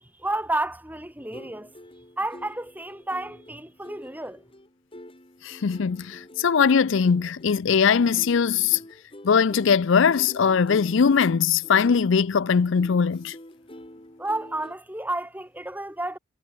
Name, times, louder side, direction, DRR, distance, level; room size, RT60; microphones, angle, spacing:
voice 1, 0.0-1.7 2.2-4.4 14.2-16.2, right 2 dB, 10° right, 2.8 m, -31 dB
Ukulele short chorded melody, 1.2-14.7, left 1 dB, 25° left, 2.6 m, -46 dB
voice 2, 5.4-8.8 9.2-13.3, left 6 dB, 55° left, 0.4 m, -21 dB
head